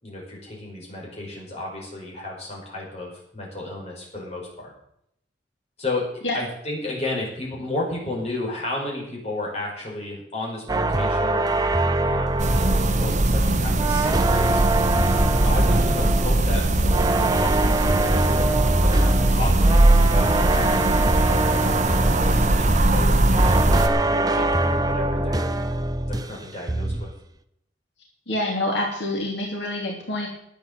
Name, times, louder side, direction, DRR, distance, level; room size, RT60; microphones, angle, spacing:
voice 1, 0.0-4.7 5.8-11.6 12.0-12.4 12.8-14.5 15.4-18.2 18.8-23.6 24.1-25.5 26.1-27.1, left 2 dB, 35° left, -2 dB, 5.2 m, -33 dB
sound 1, 10.7-26.4 26.7-27.1, right 2 dB, 20° right, 0.7 m, -23 dB
sound 2, 12.4-23.9, right 1 dB, 40° right, 1.1 m, -20 dB
voice 2, 28.3-30.3, left 1 dB, 75° left, -1 dB, 3.0 m, -26 dB
12.0 x 8.5 x 7.7 m, 0.74 s
head